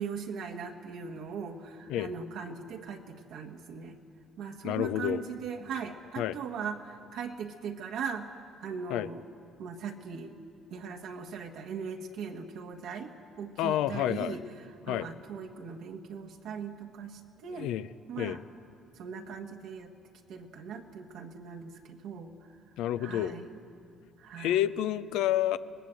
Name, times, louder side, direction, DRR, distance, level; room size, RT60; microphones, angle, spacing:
voice 1, 0.0-4.0 4.4-9.2 9.6-10.3 10.7-13.1 13.4-14.4 14.9-17.7 18.1-18.4 19.0-19.9 20.3-22.3 23.0-23.6 24.2-24.6, right 6 dB, 75° right, 2 dB, 1.5 m, -39 dB
voice 2, 4.6-5.2 6.2-6.4 8.9-9.1 13.6-14.4 14.9-15.1 17.5-17.9 18.2-18.4 22.8-23.4 24.4-25.6, left 12 dB, 80° left, 14 dB, 0.6 m, -29 dB
18.5 x 18.5 x 7.6 m, 2.5 s
cardioid pair, 95°, 0 cm